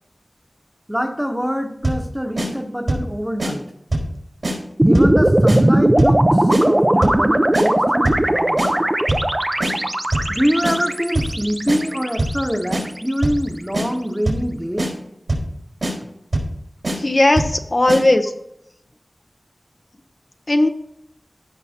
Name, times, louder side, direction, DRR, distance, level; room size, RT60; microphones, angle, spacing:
voice 1, 0.9-3.6 4.9-8.6 10.3-15.0, equal, 5° right, 5 dB, 1.1 m, -24 dB
sound 1, 1.8-2.1 2.4-2.5 2.9-3.1 3.4-3.5 3.9-4.1 4.4-4.6 4.9-5.2 5.5-5.6 6.0-6.2 6.5-6.6 7.0-7.2 7.5-7.7 8.0-8.3 8.6-8.7 9.1-9.3 9.6-9.7 10.1-10.3 10.6-10.8 11.1-11.4 11.7-11.8 12.2-12.4 12.7-12.8 13.2-13.4 13.7-13.9 14.3-14.5 14.8-14.9 15.3-15.5 15.8-15.9 16.3-16.5 16.8-17.0 17.4-17.6 17.9-18.0, right 1 dB, 70° right, 4.0 m, -22 dB
sound 2, 4.8-13.1, right 1 dB, 25° right, 0.6 m, -18 dB
voice 2, 17.0-18.3 20.5-20.7, left 1 dB, 50° left, 5 dB, 0.7 m, -16 dB
16.0 x 5.6 x 2.9 m, 0.78 s
wide cardioid pair, 40°, 0 cm